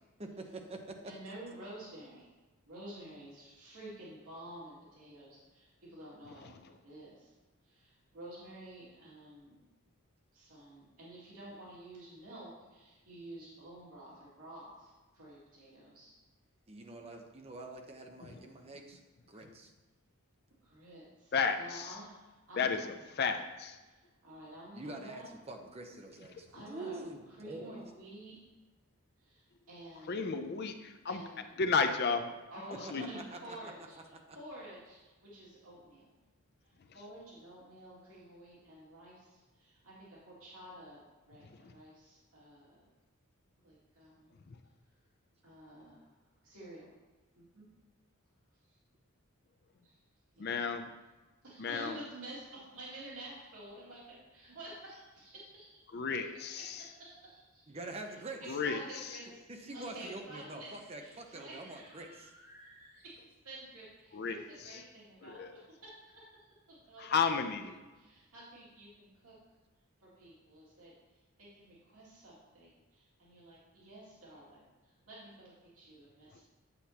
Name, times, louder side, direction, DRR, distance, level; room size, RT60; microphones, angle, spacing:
voice 1, 0.2-1.0 16.7-19.0 19.3-19.7 24.7-27.8 32.8-33.7 34.3-34.4 57.7-58.4 59.5-62.3, right 2 dB, 30° right, 3 dB, 0.8 m, -45 dB
voice 2, 1.0-2.3 2.7-6.5 6.8-7.3 7.6-9.6 10.3-16.1 20.6-22.8 23.8-25.2 26.5-28.4 29.2-30.3 31.1-31.4 32.5-33.9 34.3-36.1 36.9-42.9 43.6-44.4 45.4-46.1 46.4-46.9 47.4-47.6 49.8-49.9 50.3-50.5 51.4-55.7 56.0-56.1 56.7-57.7 58.4-59.4 59.7-63.1 63.4-66.3 66.7-67.1 67.6-67.7 67.9-69.3 70.0-70.9 71.4-74.6 74.9-76.4, right 1 dB, 80° right, -7 dB, 2.4 m, -50 dB
voice 3, 21.3-21.9 22.6-23.8 30.1-31.2 31.6-32.4 32.9-33.0 41.4-41.7 44.5-44.6 50.4-50.9 51.6-52.0 55.9-56.9 58.5-58.8 64.1-64.8 65.2-65.5 67.0-67.8 76.3-76.4, left 5 dB, 50° left, 7 dB, 0.4 m, -33 dB
8.2 x 7.6 x 2.9 m, 1.2 s
head